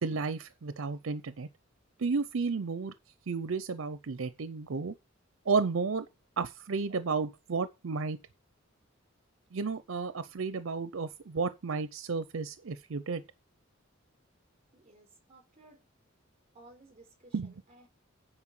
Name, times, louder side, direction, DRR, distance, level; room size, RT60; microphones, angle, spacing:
voice 1, 0.0-1.5 2.0-2.9 3.3-4.9 5.5-6.1 6.4-8.2 9.5-13.2 17.3-17.5, right 4 dB, 70° right, 0.6 m, -32 dB
voice 2, 14.7-15.8 16.5-17.9, right 2 dB, 30° right, 4.3 m, -57 dB
9.8 x 4.4 x 7.5 m
head